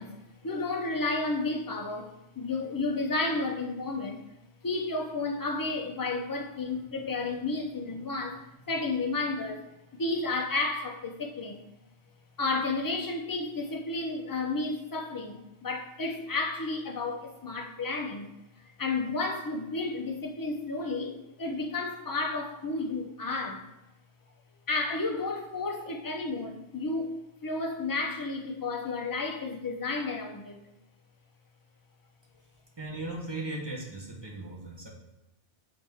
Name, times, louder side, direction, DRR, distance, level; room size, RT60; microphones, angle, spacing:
voice 1, 0.0-4.2 4.6-9.7 9.9-11.6 12.4-18.3 18.6-23.7 24.7-30.6, left 3 dB, 25° left, 0.5 m, -32 dB
voice 2, 32.8-34.9, right 2 dB, 20° right, 1.1 m, -37 dB
8.0 x 4.1 x 3.5 m
omnidirectional pair, 1.2 m